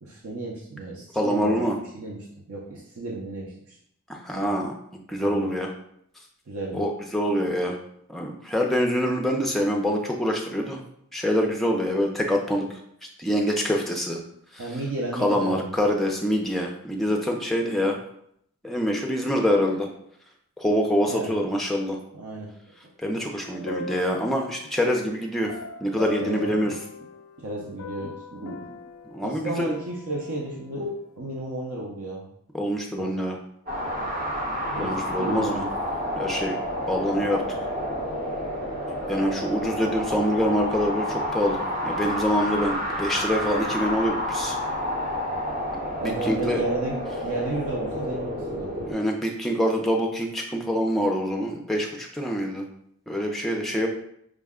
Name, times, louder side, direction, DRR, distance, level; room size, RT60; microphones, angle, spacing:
voice 1, 0.0-1.6 1.9-3.8 4.3-4.5 5.2-5.5 6.5-6.8 14.6-15.8 21.1-21.4 22.1-22.5 22.8-22.9 26.2-26.7 27.4-28.8 29.2-32.3 33.0-33.1 34.7-35.7 46.0-48.7, right 2 dB, 80° right, -3 dB, 0.7 m, -33 dB
voice 2, 1.1-1.8 4.1-4.7 5.1-5.7 6.7-7.8 8.1-10.8 11.1-12.6 13.2-14.2 14.5-14.6 15.2-18.0 18.6-19.9 20.6-22.0 23.0-25.5 25.8-26.7 29.1-29.7 32.5-33.4 34.8-35.7 36.2-36.6 36.9-37.4 39.1-44.6 46.0-46.6 48.9-52.7 53.1-53.9, equal, ahead, 0 dB, 0.4 m, -25 dB
sound 1, 23.4-24.8 25.5-27.5 27.8-30.8, left 4 dB, 65° left, 0.3 m, -40 dB
sound 2, 33.7-48.9, equal, 40° right, 1.1 m, -30 dB
4.9 x 2.1 x 3.5 m, 0.71 s
head